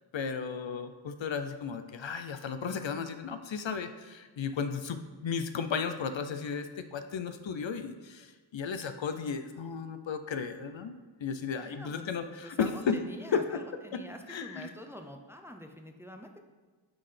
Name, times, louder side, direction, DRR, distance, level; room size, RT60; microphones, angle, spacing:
voice 1, 0.1-11.0 11.2-13.0 13.3-13.6 13.9-14.0 14.3-14.7, left 6 dB, 65° left, 9 dB, 0.5 m, -34 dB
voice 2, 11.6-16.4, left 1 dB, 5° right, 4 dB, 0.5 m, -46 dB
9.6 x 4.0 x 3.3 m, 1.4 s
wide cardioid pair, 60°, 49 cm